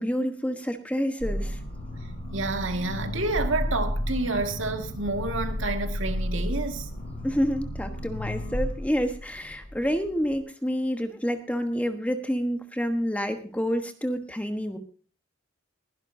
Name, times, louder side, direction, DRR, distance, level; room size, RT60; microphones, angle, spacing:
voice 1, 0.0-1.6 7.2-14.8, equal, 5° left, 1.2 m, -28 dB
sound 1, 1.2-10.4, equal, 50° left, 7.1 m, -32 dB
voice 2, 2.3-6.9, right 2 dB, 75° right, 1.9 m, -29 dB
21.5 x 11.5 x 2.7 m
head